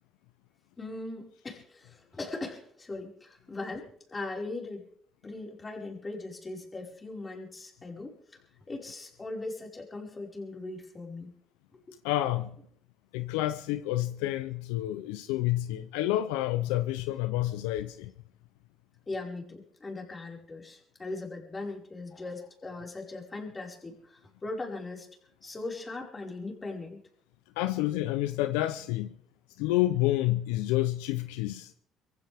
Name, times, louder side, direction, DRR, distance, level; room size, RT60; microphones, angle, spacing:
voice 1, 0.8-4.9 5.2-8.1 8.7-11.3 11.7-12.0 19.1-25.1 25.4-27.0, left 2 dB, 30° left, 5.2 m, -39 dB
voice 2, 12.0-12.5 13.1-18.1 27.6-29.1 29.6-31.7, left 15 dB, 90° left, 0.6 m, -29 dB
23.5 x 15.5 x 3.6 m
supercardioid pair, 70°, 0 cm